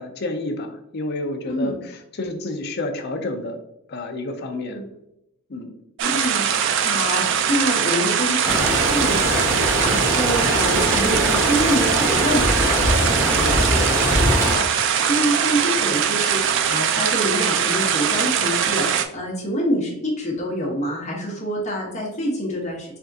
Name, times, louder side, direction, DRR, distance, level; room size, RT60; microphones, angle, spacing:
voice 1, 0.0-3.6 3.9-4.8 5.5-5.7 13.3-13.8, left 2 dB, 50° left, 5 dB, 0.5 m, -30 dB
voice 2, 1.4-1.8 4.7-4.8 6.0-23.0, equal, 30° left, -3 dB, 1.0 m, -26 dB
sound 1, 6.0-19.1, right 8 dB, 55° right, 0.3 m, -21 dB
sound 2, 8.4-14.6, equal, 10° right, 0.9 m, -22 dB
3.5 x 3.4 x 2.7 m, 0.85 s
head